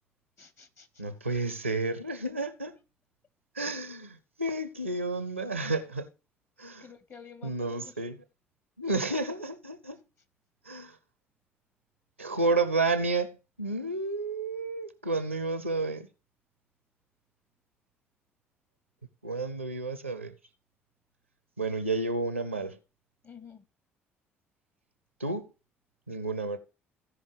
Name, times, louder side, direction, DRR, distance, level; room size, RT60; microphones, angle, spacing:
voice 1, 0.4-0.9 6.8-8.0 23.2-23.6, left 6 dB, 40° left, 1.2 m, -50 dB
voice 2, 1.0-2.7 3.6-6.1 6.6-6.8 7.4-8.2 8.8-10.0 10.7-11.0 12.2-16.1 19.2-20.3 21.6-22.8 25.2-25.5 26.1-26.6, right 3 dB, 90° right, 0.6 m, -31 dB
16.0 x 5.3 x 3.3 m
figure-of-eight pair, 50°, 7 cm